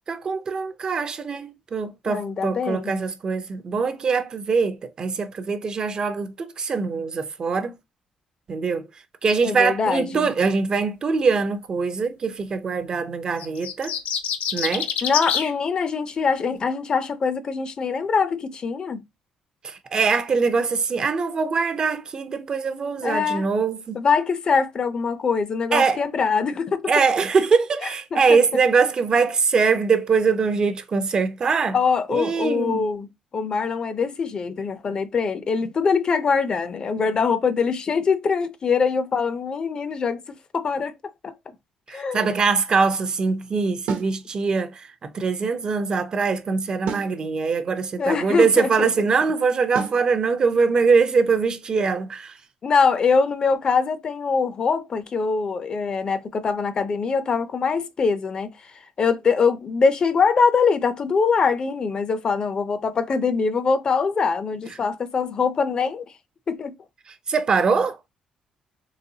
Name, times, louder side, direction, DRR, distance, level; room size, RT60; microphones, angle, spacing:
voice 1, 0.1-7.7 8.5-8.9 9.2-13.9 14.5-14.9 19.6-24.0 25.7-26.0 26.9-31.7 32.1-32.9 41.9-52.4 67.1-68.0, right 5 dB, 35° right, 0.5 m, -22 dB
voice 2, 2.1-2.9 9.4-10.3 15.0-19.0 23.0-23.5 23.9-26.9 28.1-28.4 31.7-33.1 33.3-40.2 40.5-41.0 41.2-41.3 41.9-42.3 48.0-48.9 52.6-58.7 59.0-66.1 66.5-66.7, left 5 dB, 35° left, 0.5 m, -23 dB
sound 1, 13.4-15.5, left 8 dB, 80° left, 0.6 m, -26 dB
sound 2, 43.9-44.2 46.9-47.2 49.8-50.1, right 5 dB, 70° right, 0.9 m, -29 dB
3.9 x 3.3 x 2.7 m
cardioid pair, 140°, 2 cm